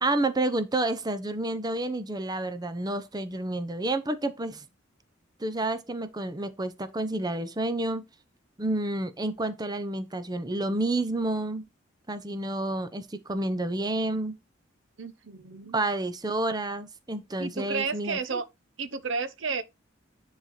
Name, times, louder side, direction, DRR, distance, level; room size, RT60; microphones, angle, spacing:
voice 1, 0.0-4.6 5.4-8.0 8.6-11.6 12.1-14.4 15.7-18.4, right 2 dB, 20° right, 0.7 m, -29 dB
voice 2, 15.0-15.8 17.4-18.4 18.8-19.6, right 4 dB, 75° right, 0.8 m, -32 dB
10.0 x 4.1 x 4.2 m
head